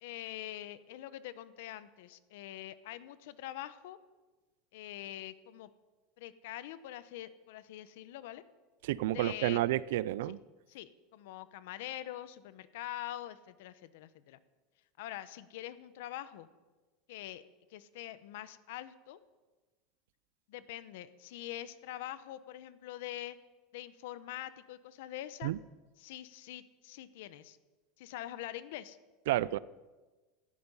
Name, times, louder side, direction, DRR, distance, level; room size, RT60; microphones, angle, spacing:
voice 1, 0.0-4.0 4.7-5.7 6.2-8.4 9.1-9.6 10.2-10.3 10.7-14.4 15.0-16.5 17.1-17.4 17.7-19.2 20.5-23.4 23.7-25.5 26.0-27.6 28.0-29.0, left 13 dB, 70° left, 14 dB, 1.0 m, -44 dB
voice 2, 8.8-10.4 25.4-25.6 29.3-29.6, right 15 dB, 75° right, 20 dB, 0.5 m, -30 dB
17.5 x 14.0 x 5.6 m, 1.2 s
supercardioid pair, 165°, 0 cm